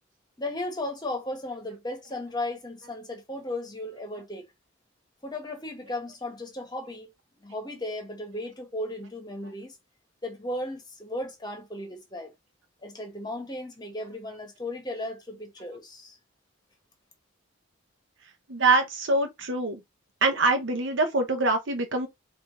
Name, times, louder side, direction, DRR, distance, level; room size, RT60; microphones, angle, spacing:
voice 1, 0.4-4.4 5.2-7.1 7.4-9.8 10.2-12.3 12.8-16.2, left 1 dB, 20° left, 1.2 m, -35 dB
voice 2, 18.5-19.8 20.2-22.1, right 3 dB, 65° right, 0.8 m, -24 dB
4.8 x 2.6 x 3.7 m
head